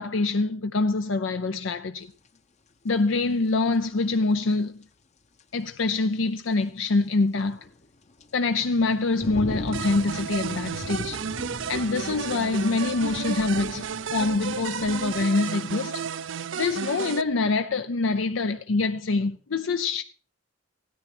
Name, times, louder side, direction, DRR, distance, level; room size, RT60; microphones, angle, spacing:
voice 1, 0.0-2.1 2.8-4.8 5.5-7.6 8.3-11.2 11.7-16.0 16.5-20.0, left 3 dB, 80° left, 0.6 m, -25 dB
sound 1, 2.3-2.4 4.8-4.9 5.4-5.5 7.0-15.3, left 2 dB, 35° left, 0.8 m, -39 dB
sound 2, 9.7-17.2, right 6 dB, 75° right, 0.5 m, -32 dB
16.0 x 10.0 x 4.4 m
head